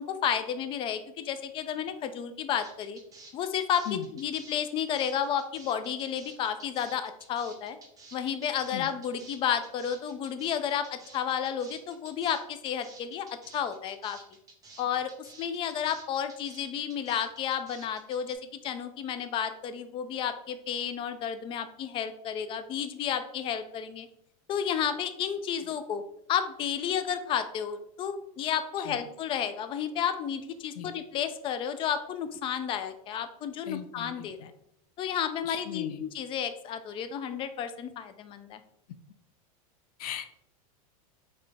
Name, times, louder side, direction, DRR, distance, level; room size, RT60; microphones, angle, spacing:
voice 1, 0.0-3.0 3.3-3.9 4.1-7.8 8.1-13.3 13.5-14.2 14.8-15.1 15.4-24.1 24.5-26.0 26.3-34.5 35.0-38.6, left 8 dB, 30° left, 10 dB, 0.4 m, -32 dB
sound 1, 2.6-18.3, right 3 dB, 20° right, 0.9 m, -52 dB
voice 2, 33.7-34.5 35.4-36.0 40.0-40.3, left 10 dB, 90° left, 11 dB, 0.4 m, -38 dB
4.0 x 3.2 x 3.3 m, 0.76 s
supercardioid pair, 130°, 19 cm